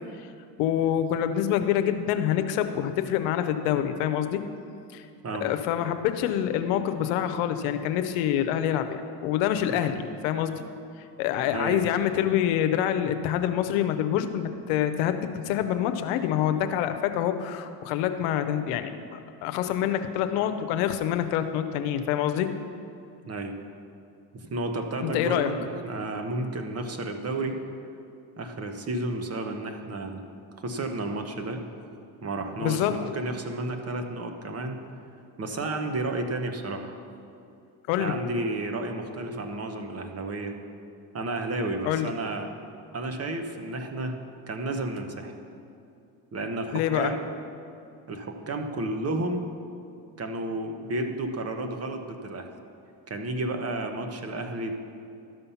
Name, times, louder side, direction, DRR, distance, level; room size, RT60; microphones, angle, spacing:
voice 1, 0.6-4.4 4.9-5.0 5.4-10.5 11.2-22.5 25.0-25.5 32.6-33.1 37.9-38.1 41.8-42.1 46.7-47.1, left 10 dB, 90° left, 9 dB, 0.7 m, -26 dB
voice 2, 5.2-5.5 9.7-10.0 11.5-11.8 23.3-23.6 24.3-27.6 28.4-30.2 30.6-31.6 32.2-34.8 35.4-36.9 38.0-40.6 41.1-42.5 42.9-44.2 44.5-45.3 46.3-47.2 48.1-49.5 50.2-52.5 53.1-54.7, right 2 dB, 35° right, 5 dB, 1.1 m, -32 dB
12.5 x 5.7 x 5.6 m, 2.6 s
supercardioid pair, 90°, 44 cm